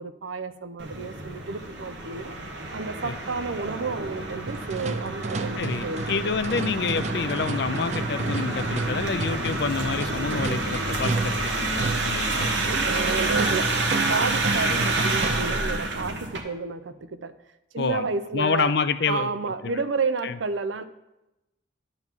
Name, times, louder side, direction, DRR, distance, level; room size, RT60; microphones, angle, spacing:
voice 1, 0.0-2.4 2.7-6.3 10.3-11.2 11.8-12.1 12.6-17.4 17.7-18.7 19.1-20.8, right 4 dB, 85° right, 12 dB, 0.6 m, -31 dB
sound 1, 0.8-16.4, right 2 dB, 70° right, 1.2 m, -29 dB
sound 2, 4.5-15.7, right 3 dB, 35° right, 0.4 m, -32 dB
voice 2, 5.6-12.5 17.8-18.1 18.3-19.3 20.2-20.3, left 5 dB, 60° left, 13 dB, 0.5 m, -28 dB
10.5 x 4.0 x 7.3 m, 0.94 s
head